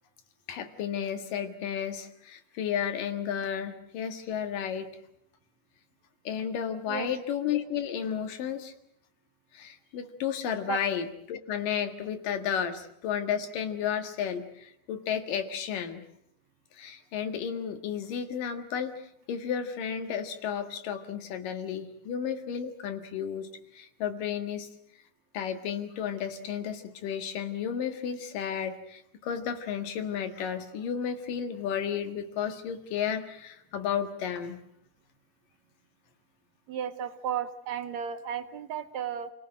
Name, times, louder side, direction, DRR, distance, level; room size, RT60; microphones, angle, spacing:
voice 1, 0.5-4.9 6.2-8.7 9.5-16.1 16.8-24.7 25.3-34.6, left 8 dB, 80° left, 7 dB, 3.4 m, -33 dB
voice 2, 36.7-39.3, right 9 dB, 65° right, 10 dB, 2.1 m, -34 dB
29.0 x 18.0 x 7.8 m, 0.74 s
omnidirectional pair, 3.8 m